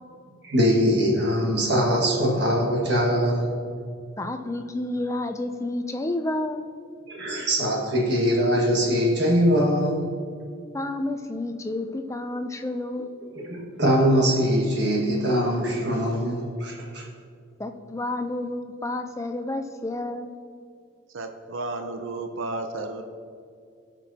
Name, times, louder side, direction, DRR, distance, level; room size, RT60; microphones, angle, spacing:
voice 1, 0.4-3.5 7.1-10.1 13.3-17.0, equal, 55° right, -2 dB, 1.8 m, -22 dB
voice 2, 4.2-6.7 10.7-13.1 17.6-20.3, left 2 dB, 15° left, 7 dB, 0.4 m, -30 dB
voice 3, 21.1-23.0, right 2 dB, 75° right, 6 dB, 0.6 m, -32 dB
16.0 x 6.1 x 2.8 m, 2.3 s
head